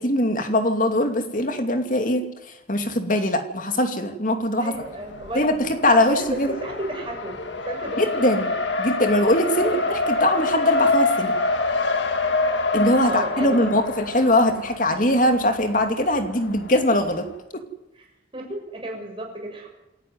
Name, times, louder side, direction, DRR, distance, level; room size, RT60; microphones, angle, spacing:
voice 1, 0.0-2.2 2.7-4.7 5.3-5.5 5.8-6.5 8.0-8.5 8.8-11.3 12.7-17.3 17.5-17.6, left 1 dB, 45° left, 6 dB, 2.6 m, -21 dB
voice 2, 4.6-5.5 5.9-7.4 7.7-8.1 9.5-9.8 13.1-13.7 14.2-14.5 18.3-19.7, right 1 dB, 25° right, 1 dB, 6.5 m, -32 dB
Race car auto racing, 4.7-17.4, left 3 dB, 70° left, 2.1 m, -27 dB
27.5 x 11.0 x 9.5 m, 0.93 s
head